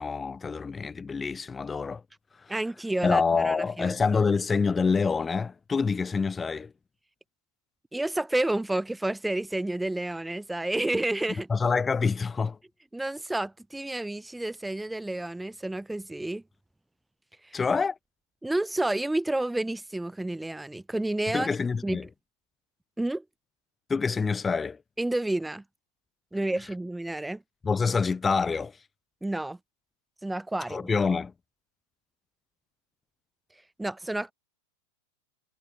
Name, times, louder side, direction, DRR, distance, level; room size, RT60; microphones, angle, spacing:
voice 1, 0.0-2.0 2.4-2.5 3.0-6.7 11.5-12.6 17.5-18.0 21.3-22.1 23.9-24.8 27.6-28.8 30.7-31.3, left 5 dB, 15° left, 1.3 m, -26 dB
voice 2, 2.5-4.0 7.9-11.5 12.9-16.4 17.4-17.6 18.4-21.5 21.8-22.0 23.0-23.2 25.0-25.6 26.3-27.4 29.2-29.6 30.2-30.9 33.8-34.3, right 1 dB, 5° right, 1.4 m, -30 dB
figure-of-eight pair, 90°, 0 cm